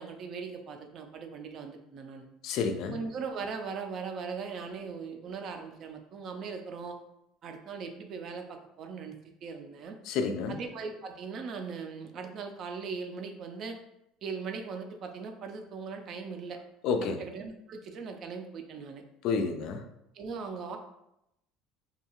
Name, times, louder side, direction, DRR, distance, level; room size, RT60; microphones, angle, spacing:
voice 1, 0.0-2.3 2.9-7.0 7.4-10.0 10.5-13.8 14.2-16.6 17.0-19.0 20.1-20.8, right 5 dB, 45° right, 5 dB, 0.4 m, -39 dB
voice 2, 2.4-3.0 10.1-10.6 16.8-17.2 19.2-19.8, left 5 dB, 60° left, 6 dB, 0.3 m, -29 dB
2.6 x 2.3 x 2.9 m, 0.83 s
cardioid pair, 135°, 0 cm